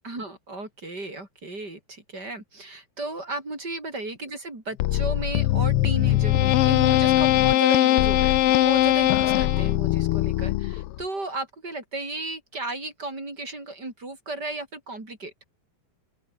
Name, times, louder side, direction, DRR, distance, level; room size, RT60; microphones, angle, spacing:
voice 1, 0.0-15.3, right 2 dB, 30° right, 7.3 m, -34 dB
sound 1, 4.8-11.0, left 15 dB, 80° left, 1.3 m, -21 dB
open air
omnidirectional pair, 3.4 m